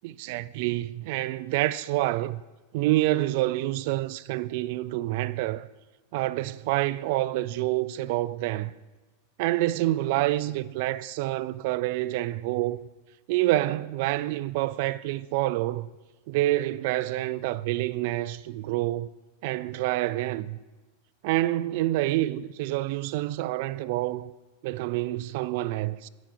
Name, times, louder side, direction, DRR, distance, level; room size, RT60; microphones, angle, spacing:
voice 1, 0.0-2.4 2.7-5.7 6.1-8.7 9.4-12.8 13.3-15.9 16.3-19.1 19.4-20.6 21.2-24.3 24.6-26.1, right 16 dB, 60° right, 0.3 m, -27 dB
9.3 x 5.2 x 6.1 m
supercardioid pair, 135°, 0 cm